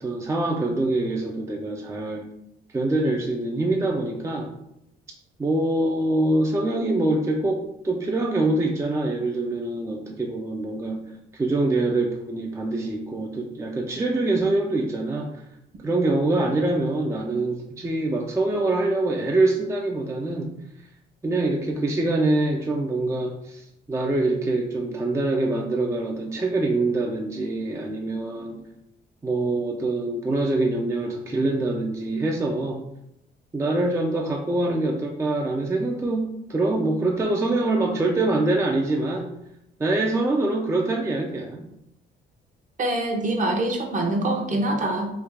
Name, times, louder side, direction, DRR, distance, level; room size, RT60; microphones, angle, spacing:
voice 1, 0.0-2.2 2.7-4.5 5.4-11.0 11.3-15.3 15.8-20.5 21.2-28.6 29.2-32.8 33.5-39.3 39.8-41.6, right 2 dB, 15° right, 1 dB, 0.4 m, -24 dB
voice 2, 42.8-45.1, right 1 dB, 40° right, 3 dB, 0.7 m, -24 dB
3.3 x 2.3 x 3.4 m, 0.81 s
cardioid pair, 90°, 20 cm